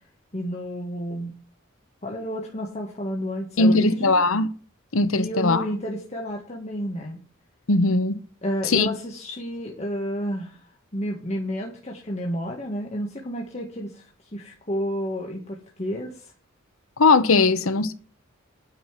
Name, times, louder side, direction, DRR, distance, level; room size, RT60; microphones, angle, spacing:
voice 1, 0.3-1.3 2.0-4.2 5.1-7.2 8.4-10.6 10.9-14.1 14.3-16.3, equal, 35° left, 1.8 m, -31 dB
voice 2, 3.6-4.5 4.9-5.6 7.7-8.1 8.7-8.9 17.0-17.9, left 3 dB, 85° left, 1.0 m, -19 dB
9.3 x 5.7 x 7.5 m
head